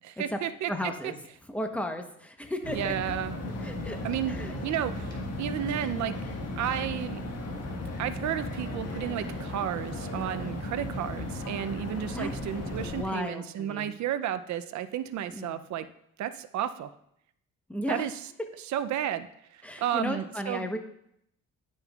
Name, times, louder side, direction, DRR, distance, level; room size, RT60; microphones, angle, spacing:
voice 1, 0.0-0.7 2.7-3.3 4.0-4.4 4.6-6.2 6.6-7.2 8.0-15.9 16.2-16.9 17.9-18.1 18.7-19.3 19.5-20.7, right 10 dB, 70° right, 12 dB, 0.5 m, -32 dB
voice 2, 0.7-1.1 1.5-3.0 3.6-4.0 4.3-4.5 12.1-12.3 12.7-13.9 15.3-15.6 17.7-18.1 19.6-20.8, left 1 dB, 5° left, 5 dB, 0.9 m, -34 dB
sound 1, 2.6-13.0, left 1 dB, 55° left, 1.6 m, -36 dB
11.0 x 5.4 x 2.4 m, 0.74 s
cardioid pair, 90°, 30 cm